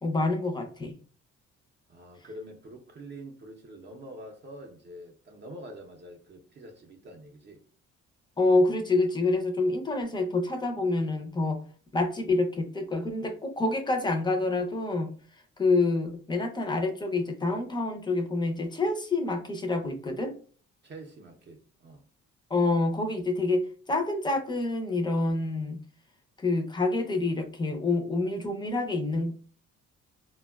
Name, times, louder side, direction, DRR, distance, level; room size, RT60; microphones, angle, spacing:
voice 1, 0.0-0.9 8.4-11.6 11.9-20.3 22.5-25.8 26.4-29.3, left 2 dB, 15° left, 0.5 m, -27 dB
voice 2, 1.9-7.6 20.8-22.1, right 1 dB, 35° right, 0.6 m, -46 dB
3.5 x 2.2 x 2.2 m
cardioid pair, 90°, 30 cm